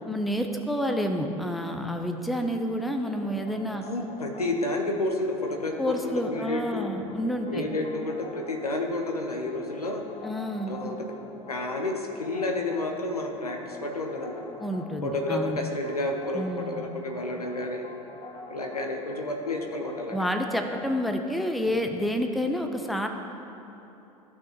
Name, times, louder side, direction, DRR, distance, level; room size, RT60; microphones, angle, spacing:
voice 1, 0.1-3.8 5.8-7.7 10.2-10.8 14.6-15.6 16.3-16.8 20.1-23.1, equal, ahead, 4 dB, 0.6 m, -29 dB
sound 1, 3.2-21.1, left 3 dB, 30° left, 0.9 m, -45 dB
voice 2, 3.9-6.9 7.5-10.0 10.7-11.1 11.5-14.4 15.0-17.8 18.5-20.2, left 2 dB, 90° left, 2 dB, 0.8 m, -30 dB
14.5 x 6.0 x 2.9 m, 3.0 s
figure-of-eight pair, 75°, 19 cm